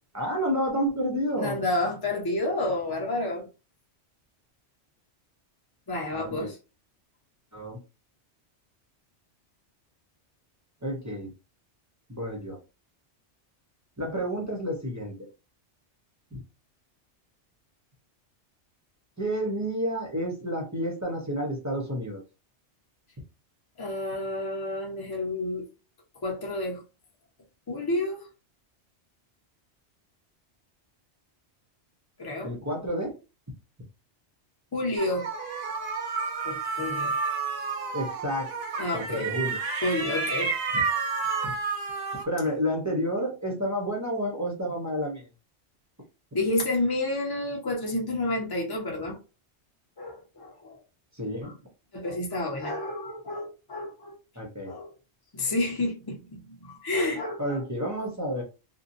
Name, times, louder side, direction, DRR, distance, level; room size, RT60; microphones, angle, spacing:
voice 1, 0.1-1.6 6.1-6.5 7.5-7.8 10.8-11.3 12.1-12.6 14.0-15.3 16.3-16.4 19.2-22.2 32.4-33.1 37.9-38.5 38.9-39.6 41.4-41.5 42.2-45.3 51.2-51.6 54.4-54.7 57.4-58.4, equal, 20° right, 0.6 m, -30 dB
voice 2, 1.4-3.5 5.9-6.6 23.8-25.7 26.2-26.8 27.7-28.3 32.2-32.5 34.7-35.3 36.4-37.1 38.8-39.3 39.8-40.5 46.3-49.2 50.0-50.8 51.4-51.5 51.9-54.1 54.6-54.9 55.3-57.6, left 2 dB, 25° left, 0.6 m, -30 dB
sound 1, 35.0-42.2, right 4 dB, 65° right, 0.8 m, -30 dB
2.7 x 2.2 x 2.6 m
omnidirectional pair, 1.2 m